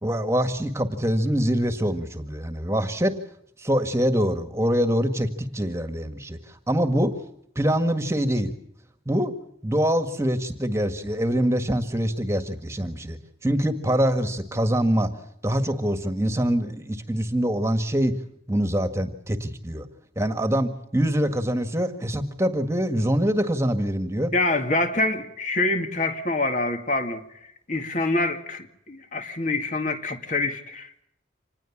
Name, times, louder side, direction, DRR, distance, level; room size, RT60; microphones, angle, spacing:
voice 1, 0.0-3.2 3.6-6.4 6.7-7.1 7.5-8.5 9.0-9.3 9.6-13.2 13.4-15.1 15.4-18.2 18.5-19.8 20.1-24.3, equal, 15° right, 1.8 m, -24 dB
voice 2, 24.3-27.2 27.7-30.9, left 2 dB, 40° left, 2.2 m, -26 dB
26.5 x 20.0 x 7.4 m
head